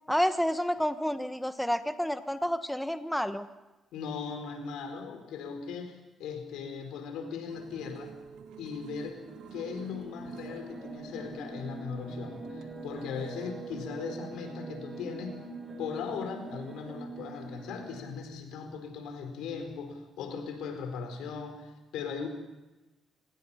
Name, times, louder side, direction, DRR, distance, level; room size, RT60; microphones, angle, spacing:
voice 1, 0.1-3.5, equal, ahead, 9 dB, 1.4 m, -29 dB
voice 2, 3.9-8.2 8.6-9.2 9.5-15.4 15.8-22.3, left 6 dB, 90° left, 6 dB, 4.6 m, -38 dB
sound 1, 7.5-13.5, right 7 dB, 85° right, 1.9 m, -51 dB
sound 2, 9.1-18.3, right 3 dB, 35° right, 6.2 m, -43 dB
26.5 x 19.5 x 5.7 m, 1.1 s
cardioid pair, 90°, 0 cm